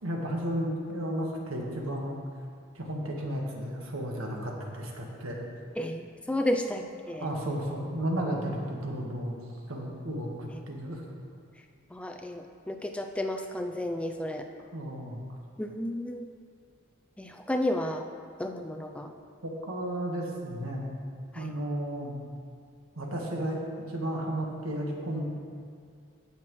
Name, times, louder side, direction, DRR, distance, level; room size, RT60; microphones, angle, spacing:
voice 1, 0.0-2.2 2.7-5.4 7.1-9.3 9.7-11.0 14.7-15.2 19.4-20.9 21.3-22.2 22.9-23.6 23.9-25.3, right 1 dB, 85° right, -1 dB, 1.5 m, -33 dB
voice 2, 5.8-7.3 11.9-14.5 15.6-16.3 17.2-18.1 18.4-19.1 21.3-21.5, left 1 dB, 5° left, 4 dB, 0.3 m, -32 dB
16.5 x 5.8 x 3.1 m, 2.2 s
head